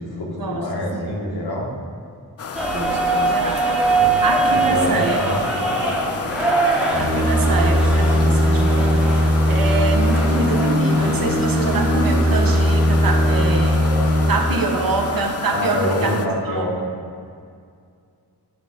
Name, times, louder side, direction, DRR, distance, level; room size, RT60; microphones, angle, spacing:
voice 1, 0.0-1.7 3.9-4.1 4.5-5.9 15.5-16.9, left 1 dB, 70° left, -2 dB, 1.4 m, -26 dB
sound 1, 2.4-16.3, left 5 dB, 40° left, 0.4 m, -31 dB
sound 2, 2.5-15.3, right 3 dB, 5° right, 0.9 m, -24 dB
voice 2, 2.7-3.9 4.2-5.4 7.0-13.9 14.3-16.2 16.5-16.6, right 3 dB, 60° right, 2 dB, 0.8 m, -25 dB
sound 3, 6.9-14.3, equal, 20° right, 1.1 m, -18 dB
9.2 x 3.1 x 3.9 m, 2.2 s
wide cardioid pair, 90°, 39 cm